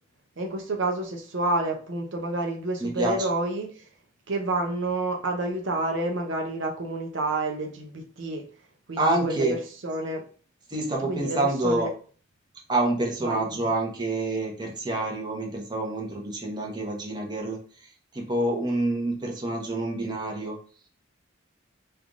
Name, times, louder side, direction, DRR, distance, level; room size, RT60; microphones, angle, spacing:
voice 1, 0.4-3.8 4.3-8.5 8.9-9.4 9.8-10.3 11.1-11.4 11.6-11.9 13.2-13.4, right 2 dB, 60° right, 2 dB, 0.6 m, -29 dB
voice 2, 2.8-3.3 9.0-9.6 10.7-11.9 12.7-20.6, right 2 dB, 20° right, -1 dB, 0.8 m, -27 dB
3.3 x 2.4 x 3.8 m, 0.41 s
head